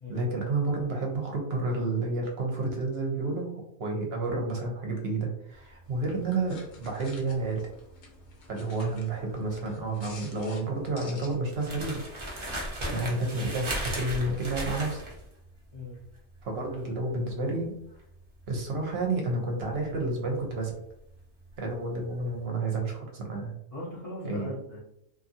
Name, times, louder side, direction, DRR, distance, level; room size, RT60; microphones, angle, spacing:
voice 1, 0.1-3.5 3.8-7.6 8.5-12.0 12.9-15.0 16.4-17.7 18.5-20.7 21.6-23.5 24.2-24.5, right 2 dB, 60° right, 0 dB, 0.9 m, -30 dB
sound 1, 5.5-21.7 22.0-22.3, right 1 dB, 35° right, 0.5 m, -38 dB
sound 2, 5.8-11.3, left 3 dB, 90° left, 1.1 m, -51 dB
voice 2, 12.8-13.2 15.7-16.0 23.7-24.8, left 1 dB, 40° left, -3 dB, 0.6 m, -39 dB
2.6 x 2.6 x 2.6 m, 0.76 s
omnidirectional pair, 1.3 m